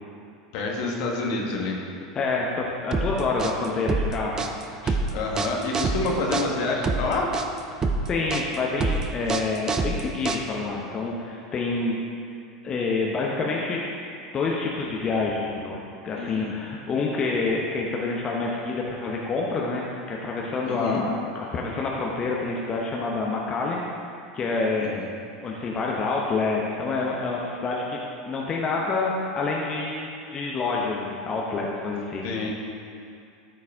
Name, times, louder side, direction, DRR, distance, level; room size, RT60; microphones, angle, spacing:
voice 1, 0.5-1.8 4.8-7.3 16.1-16.6 20.6-21.0 24.8-25.1 32.2-32.5, left 3 dB, 60° left, -1 dB, 1.4 m, -28 dB
voice 2, 2.1-4.4 8.0-11.9 12.6-13.8 14.3-23.8 24.3-24.9 25.4-28.0 28.2-32.3, left 3 dB, 30° left, -2 dB, 1.0 m, -27 dB
sound 1, 2.9-10.8, right 3 dB, 25° right, 0.6 m, -27 dB
12.5 x 4.6 x 3.6 m, 2.5 s
hypercardioid pair, 80°, 2 cm